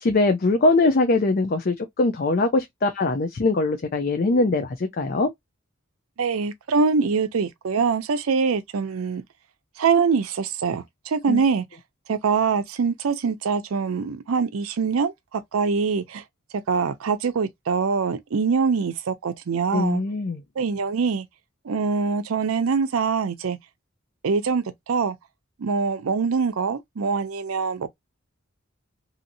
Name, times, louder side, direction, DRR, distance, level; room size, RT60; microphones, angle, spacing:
voice 1, 0.0-5.3 11.3-11.4 19.7-20.4, left 2 dB, 45° left, 0.5 m, -22 dB
voice 2, 6.2-9.2 9.8-11.6 12.1-16.2 16.7-20.0 20.6-21.3 21.6-23.6 24.2-25.2 25.6-27.9, right 5 dB, 90° right, 0.5 m, -24 dB
2.7 x 2.7 x 2.5 m
head